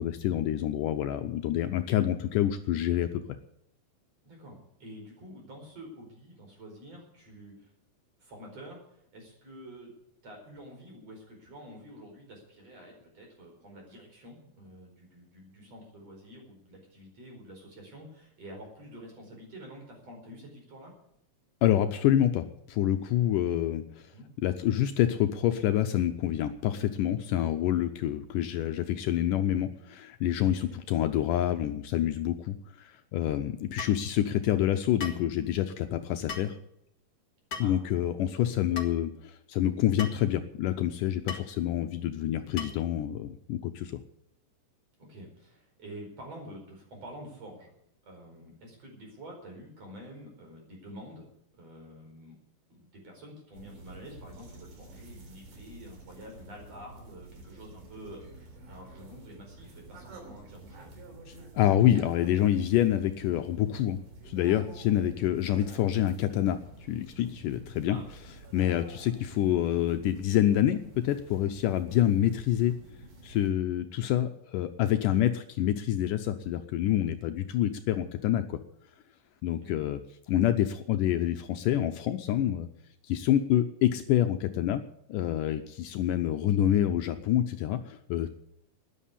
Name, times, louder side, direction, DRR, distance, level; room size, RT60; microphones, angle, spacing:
voice 1, 0.0-3.2 21.6-24.1 24.4-36.6 37.6-44.0 61.6-64.0 64.3-68.0 68.5-72.7 73.2-78.6 79.4-80.0 80.3-82.7 83.0-84.8 85.1-88.3, left 11 dB, 80° left, 8 dB, 2.2 m, -27 dB
voice 2, 4.2-7.7 8.2-9.9 10.2-20.9 24.0-24.3 30.7-30.8 37.6-37.8 38.3-38.5 45.0-47.7 48.0-52.4 52.7-60.9 64.9-65.1 67.9-68.1 75.2-75.4 79.6-79.8, equal, 45° right, 1 dB, 5.8 m, -48 dB
sound 1, 33.8-34.0 35.0-35.3 36.3-36.5 37.5-37.8 38.8-38.9 40.0-40.2 41.3-41.5 42.6-42.9, left 5 dB, 50° left, 1.1 m, -38 dB
sound 2, 53.5-73.5, right 2 dB, 65° right, 4.5 m, -50 dB
13.0 x 10.5 x 8.4 m, 0.75 s
omnidirectional pair, 4.0 m